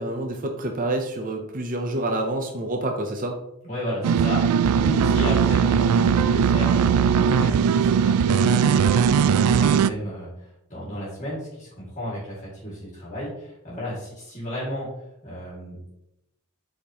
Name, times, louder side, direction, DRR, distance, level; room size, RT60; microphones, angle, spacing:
voice 1, 0.0-3.4, right 1 dB, 40° right, 3 dB, 0.7 m, -27 dB
voice 2, 3.6-14.9 15.2-16.0, equal, 35° left, -6 dB, 2.1 m, -33 dB
sound 1, 4.0-9.9, right 7 dB, 80° right, 0.3 m, -19 dB
8.2 x 4.3 x 2.9 m, 0.84 s
head